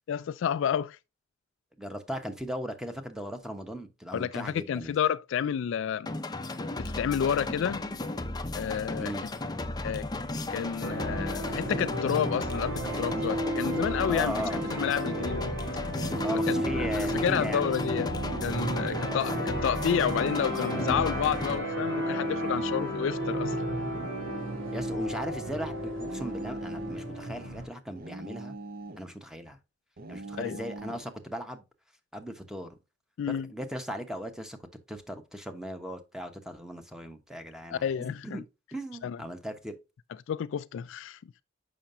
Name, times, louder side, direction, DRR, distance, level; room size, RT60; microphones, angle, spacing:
voice 1, 0.1-1.0 4.1-6.1 6.8-7.8 8.5-9.1 9.8-10.1 10.5-15.5 16.5-18.2 18.4-23.6 30.4-30.6 33.2-33.5 37.7-38.4 39.0-39.2 40.3-41.2, left 8 dB, 65° left, 0.3 m, -30 dB
voice 2, 1.8-4.9 8.9-9.3 14.1-14.6 16.2-17.7 19.0-19.3 24.7-28.6 29.0-29.6 30.1-31.6 32.1-32.7 33.3-34.6 34.9-38.4 38.7-39.8, equal, 5° right, 1.0 m, -38 dB
sound 1, 6.1-21.6, left 2 dB, 20° left, 0.5 m, -35 dB
sound 2, 10.8-27.7, right 1 dB, 85° right, 2.4 m, -33 dB
sound 3, 13.9-15.0 15.9-17.0 17.9-19.1 19.9-21.0 21.9-23.1 23.9-25.1 26.0-27.1 28.0-29.1 30.0-31.1, right 2 dB, 45° right, 0.7 m, -42 dB
7.1 x 5.7 x 2.6 m
head